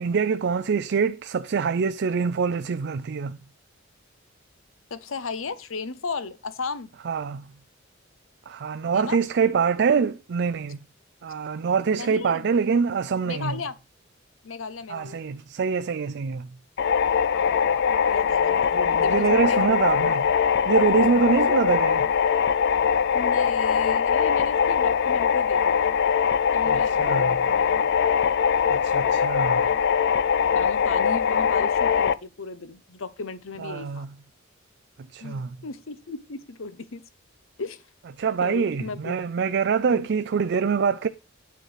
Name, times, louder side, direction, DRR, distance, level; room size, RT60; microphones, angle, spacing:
voice 1, 0.0-3.4 7.1-7.4 8.5-10.8 11.2-13.6 14.9-16.5 18.7-20.2 20.7-22.1 26.7-27.4 28.7-29.7 33.6-34.1 35.1-35.6 38.2-41.1, right 5 dB, 60° right, 0.4 m, -25 dB
voice 2, 4.9-6.9 8.9-9.2 11.9-12.5 13.2-13.8 14.4-15.2 17.3-20.1 23.1-25.9 26.5-28.1 30.5-34.1 35.2-37.0 37.6-37.8 38.4-39.1 39.9-40.1, left 4 dB, 85° left, 0.9 m, -35 dB
sound 1, 16.8-32.1, left 7 dB, 60° left, 0.4 m, -22 dB
9.1 x 4.5 x 4.8 m
head